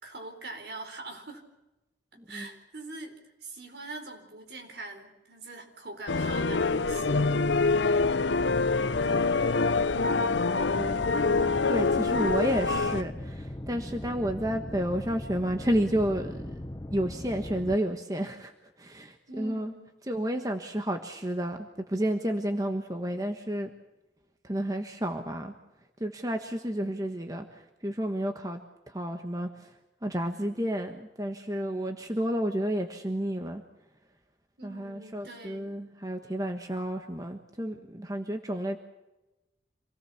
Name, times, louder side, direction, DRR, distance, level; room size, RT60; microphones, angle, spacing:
voice 1, 0.0-1.4 2.3-7.5 8.6-9.4 19.3-19.9 34.6-35.8, right 2 dB, 65° right, 4 dB, 4.5 m, -43 dB
sound 1, 6.1-13.0, left 4 dB, 80° left, 0.7 m, -25 dB
voice 2, 9.7-16.6 16.9-18.5 18.8-19.7 20.1-23.7 24.4-25.5 26.0-28.6 28.9-29.7 30.0-33.6 34.6-38.8, equal, 20° right, 5 dB, 1.3 m, -31 dB
sound 2, 10.7-17.8, left 1 dB, 20° left, 0.9 m, -39 dB
27.0 x 18.5 x 7.2 m, 1.0 s
head